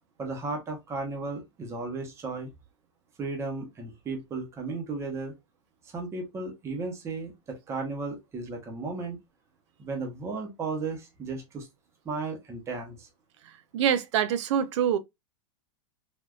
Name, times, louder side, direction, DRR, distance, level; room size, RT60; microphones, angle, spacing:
voice 1, 0.2-2.5 3.2-5.3 5.9-9.2 9.8-11.7 12.0-13.1, right 3 dB, 15° right, 0.8 m, -35 dB
voice 2, 13.7-15.0, right 9 dB, 65° right, 0.5 m, -25 dB
3.4 x 2.5 x 2.3 m
supercardioid pair, 150°, 16 cm